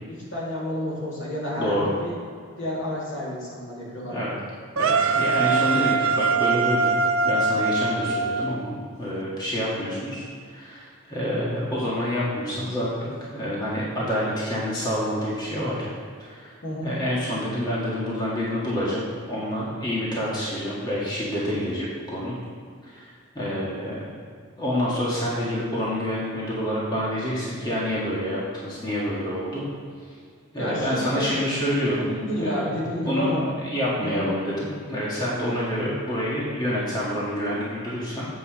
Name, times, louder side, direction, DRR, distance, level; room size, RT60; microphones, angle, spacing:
voice 1, 0.1-2.1 2.6-4.3 5.5-5.7 16.6-16.9 30.6-31.4 32.1-33.4 34.0-34.3, left 1 dB, 65° left, -5 dB, 2.5 m, -30 dB
voice 2, 1.5-1.9 4.0-4.3 4.7-15.9 16.2-16.5 16.8-22.3 22.8-24.1 24.6-29.6 30.5-32.1 32.4-32.8 33.0-33.3 33.6-38.3, equal, 20° left, -7 dB, 1.7 m, -27 dB
sound 1, 4.8-8.9, right 4 dB, 75° right, 0.5 m, -23 dB
8.0 x 5.5 x 6.4 m, 2.2 s
head